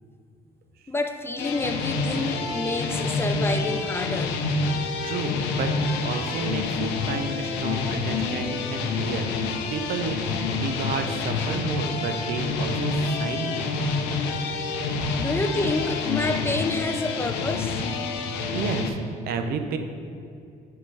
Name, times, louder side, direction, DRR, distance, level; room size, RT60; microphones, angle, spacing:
voice 1, 0.9-4.5 15.1-17.9, left 2 dB, 15° left, 6 dB, 0.3 m, -28 dB
sound 1, 1.4-18.9, left 4 dB, 90° left, 0.6 m, -28 dB
voice 2, 5.0-10.2 10.5-13.7 18.5-19.0 19.3-19.8, right 4 dB, 65° right, 6 dB, 0.6 m, -31 dB
6.5 x 3.7 x 4.6 m, 2.5 s
cardioid pair, 110°, 17 cm